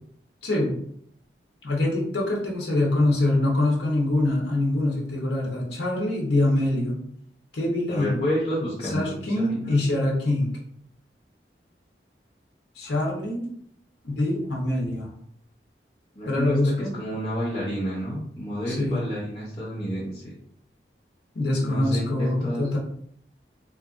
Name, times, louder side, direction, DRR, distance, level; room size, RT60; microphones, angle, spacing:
voice 1, 0.4-0.7 1.6-7.0 7.5-8.2 8.8-10.5 12.8-13.5 14.0-15.1 16.3-16.9 18.7-19.1 21.3-22.8, left 1 dB, 80° left, -3 dB, 0.8 m, -24 dB
voice 2, 7.9-9.8 16.1-20.3 21.5-22.8, equal, 30° left, -8 dB, 0.7 m, -30 dB
2.8 x 2.4 x 2.4 m, 0.67 s
head